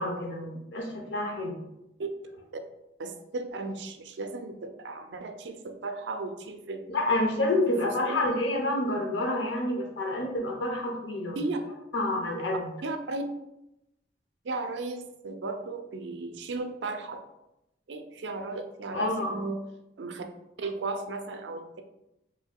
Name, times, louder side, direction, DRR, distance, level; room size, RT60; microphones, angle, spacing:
voice 1, 0.0-1.6 6.9-11.4 11.9-12.6 18.9-19.4, left 1 dB, 85° left, 2 dB, 0.7 m, -28 dB
voice 2, 3.0-7.0 8.1-8.2 11.4-11.6 12.8-13.2 14.4-17.2 17.9-19.6 20.0-20.2 20.6-21.8, right 3 dB, 80° right, 6 dB, 0.4 m, -35 dB
4.4 x 2.7 x 2.2 m, 0.89 s
head